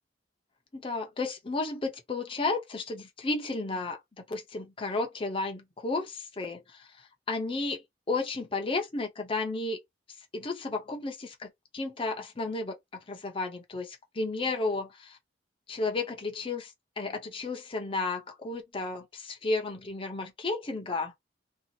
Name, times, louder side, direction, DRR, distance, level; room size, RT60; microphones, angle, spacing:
voice 1, 0.7-4.0 4.3-9.8 10.3-12.8 13.1-15.2 15.7-21.1, left 3 dB, 30° left, 0.6 m, -33 dB
2.7 x 2.4 x 2.7 m
head